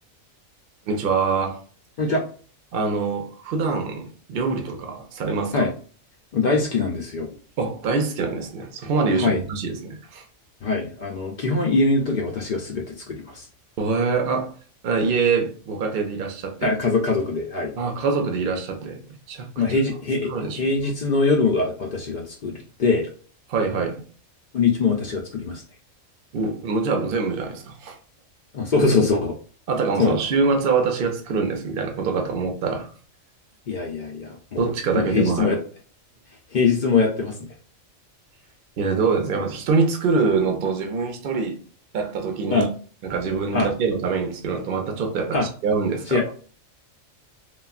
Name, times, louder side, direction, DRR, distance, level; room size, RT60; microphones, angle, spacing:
voice 1, 0.9-1.6 2.7-5.7 7.6-10.2 13.8-14.5 14.8-16.7 17.8-19.0 19.3-19.5 20.3-20.7 23.5-24.0 26.3-28.0 29.7-32.9 34.6-35.5 38.8-41.6 41.9-42.7 43.0-46.2, right 4 dB, 60° right, 0.6 m, -24 dB
voice 2, 6.3-7.3 9.2-9.4 10.6-13.5 16.6-17.7 19.6-23.1 24.5-25.6 28.5-29.4 30.0-30.2 33.7-34.7 34.9-35.6 36.5-37.4 42.5-42.7 43.5-43.7 45.3-45.5 46.1-46.4, left 4 dB, 80° left, 0.4 m, -22 dB
3.2 x 2.3 x 2.3 m
omnidirectional pair, 1.4 m